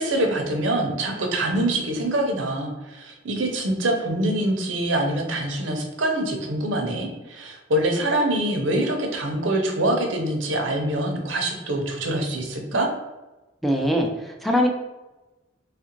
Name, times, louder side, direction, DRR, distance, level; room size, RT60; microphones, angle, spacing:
voice 1, 0.0-12.9, right 1 dB, 80° right, 2 dB, 0.7 m, -25 dB
voice 2, 13.6-14.7, equal, ahead, 1 dB, 0.3 m, -22 dB
3.3 x 2.4 x 3.0 m, 1.1 s
head